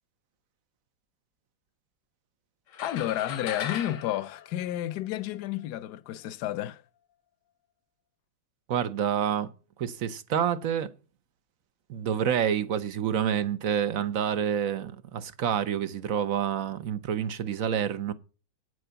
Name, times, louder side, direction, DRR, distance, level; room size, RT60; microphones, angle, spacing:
sound 1, 2.7-5.3, left 8 dB, 85° left, 1.8 m, -38 dB
voice 1, 2.8-6.8, left 13 dB, 70° left, 1.3 m, -31 dB
voice 2, 8.7-9.5 9.8-10.9 11.9-18.1, right 9 dB, 55° right, 1.1 m, -28 dB
9.3 x 7.9 x 5.7 m
omnidirectional pair, 1.9 m